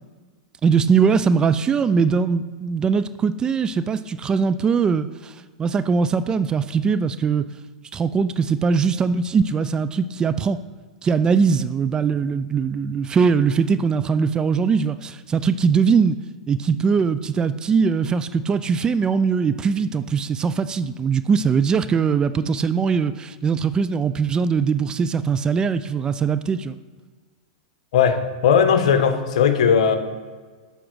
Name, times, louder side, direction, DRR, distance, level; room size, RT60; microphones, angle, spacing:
voice 1, 0.6-5.3 5.6-7.5 7.9-10.6 11.0-16.2 16.5-26.8, right 5 dB, 20° right, 13 dB, 0.3 m, -21 dB
voice 2, 27.9-30.0, left 7 dB, 65° left, 8 dB, 1.1 m, -17 dB
7.5 x 5.0 x 6.2 m, 1.5 s
hypercardioid pair, 110°, 4 cm